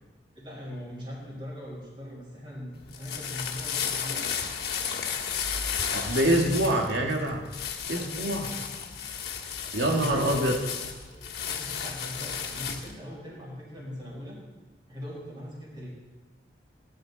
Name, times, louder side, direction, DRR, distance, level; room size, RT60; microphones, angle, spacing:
voice 1, 0.4-4.3 7.9-8.6 9.8-10.3 11.1-14.4 14.9-15.9, equal, 25° right, -4 dB, 5.1 m, -40 dB
sound 1, 2.7-13.0, left 7 dB, 60° left, 1.5 m, -33 dB
voice 2, 5.9-7.5 7.9-8.5 9.7-10.5, right 1 dB, 80° right, 1 dB, 2.1 m, -25 dB
18.5 x 11.5 x 4.1 m, 1.2 s
head